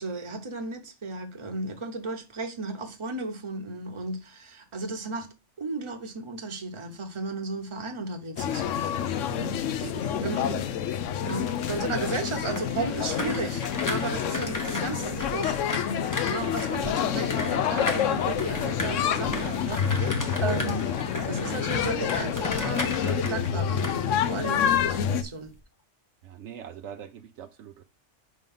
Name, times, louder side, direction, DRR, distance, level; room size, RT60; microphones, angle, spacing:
voice 1, 0.0-5.3 5.6-8.6 9.3-9.9 10.2-10.4 11.2-20.9 21.3-25.5, right 3 dB, 25° right, 0.9 m, -34 dB
sound 1, 8.4-25.2, left 8 dB, 90° left, 1.0 m, -28 dB
voice 2, 9.3-10.7 14.1-14.2 17.0-17.1 26.2-27.8, right 9 dB, 75° right, 0.9 m, -43 dB
sound 2, 10.9-24.9 25.2-25.6, left 2 dB, 20° left, 0.7 m, -36 dB
Livestock farm animals working animals, 17.8-24.1 24.4-25.4 25.7-25.8, left 2 dB, 35° left, 1.4 m, -49 dB
5.1 x 3.8 x 5.4 m
omnidirectional pair, 1.2 m